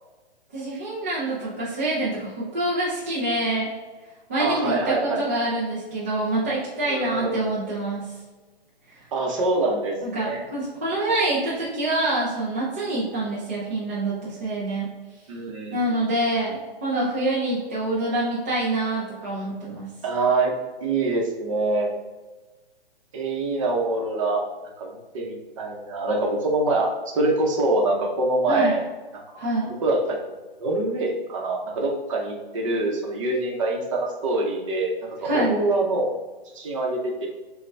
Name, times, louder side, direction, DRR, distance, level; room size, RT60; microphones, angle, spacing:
voice 1, 0.5-3.7 4.3-8.1 10.0-14.9 15.7-19.9 28.5-28.8 29.4-29.7 35.2-35.6, right 2 dB, 15° right, -9 dB, 0.4 m, -26 dB
voice 2, 4.4-5.3 6.9-7.4 9.1-10.4 15.3-16.2 20.0-20.5 20.8-21.9 23.1-24.5 24.8-28.9 29.8-36.1 36.5-37.3, right 2 dB, 30° right, 0 dB, 0.8 m, -25 dB
6.6 x 2.3 x 3.3 m, 1.2 s
hypercardioid pair, 160°, 30 cm